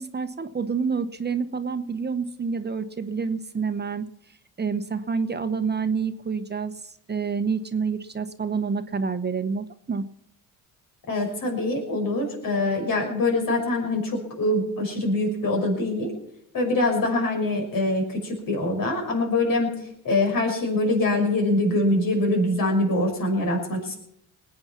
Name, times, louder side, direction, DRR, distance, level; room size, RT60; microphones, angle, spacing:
voice 1, 0.0-4.1 4.6-10.0, right 5 dB, 25° right, 10 dB, 1.0 m, -28 dB
voice 2, 11.1-16.1 16.5-23.9, left 2 dB, 65° left, 2 dB, 5.9 m, -24 dB
20.0 x 8.8 x 5.9 m, 0.73 s
supercardioid pair, 75°, 37 cm